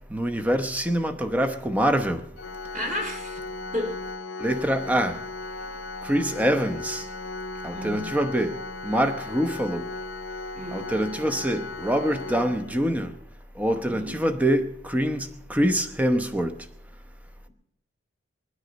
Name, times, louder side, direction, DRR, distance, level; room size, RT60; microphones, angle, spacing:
voice 1, 0.1-2.2 4.4-5.2 6.0-7.0 7.6-8.6 8.8-9.9 10.7-13.1 13.6-16.5, equal, 5° right, 0.9 m, -25 dB
Organ, 2.4-13.2, left 3 dB, 65° left, 0.9 m, -37 dB
voice 2, 2.7-3.4 3.7-4.0 7.7-8.2 10.5-10.8 13.8-14.2, left 1 dB, 40° right, 3.8 m, -32 dB
21.5 x 9.8 x 5.2 m
head